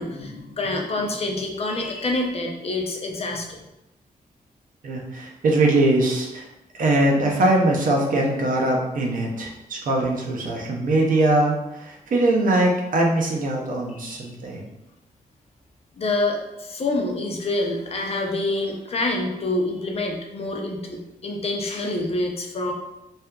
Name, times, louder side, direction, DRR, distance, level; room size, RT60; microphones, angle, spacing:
voice 1, 0.0-3.6 13.9-14.3 16.0-22.7, left 2 dB, 40° left, 1 dB, 0.5 m, -27 dB
voice 2, 4.8-6.4 6.7-14.6, right 2 dB, 65° right, 0 dB, 0.5 m, -21 dB
2.7 x 2.4 x 2.2 m, 0.92 s
cardioid pair, 100°, 15 cm